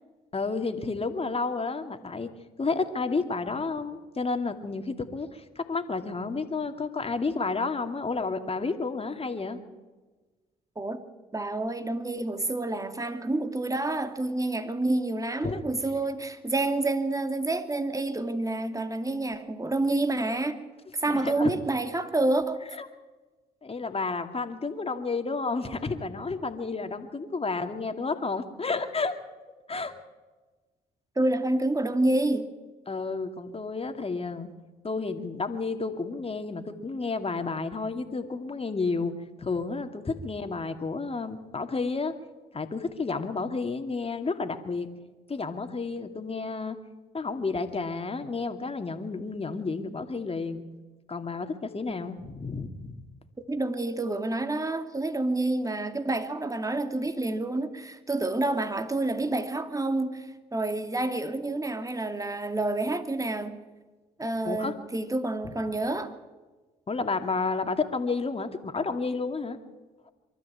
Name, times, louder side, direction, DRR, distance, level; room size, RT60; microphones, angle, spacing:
voice 1, 0.3-2.3 2.6-9.6 15.4-15.6 21.1-21.5 22.8-22.9 23.6-29.2 29.7-29.9 32.9-34.5 34.8-39.1 39.4-42.1 42.5-44.9 45.3-46.8 47.1-50.6 51.1-53.0 64.4-64.7 65.4-65.5 66.9-69.6, left 4 dB, 30° left, 7 dB, 2.4 m, -31 dB
voice 2, 11.3-20.6 20.9-22.6 31.2-32.5 53.5-63.6 64.2-66.1, right 2 dB, 20° right, 8 dB, 2.4 m, -28 dB
24.0 x 13.0 x 8.7 m, 1.3 s
hypercardioid pair, 50°, 18 cm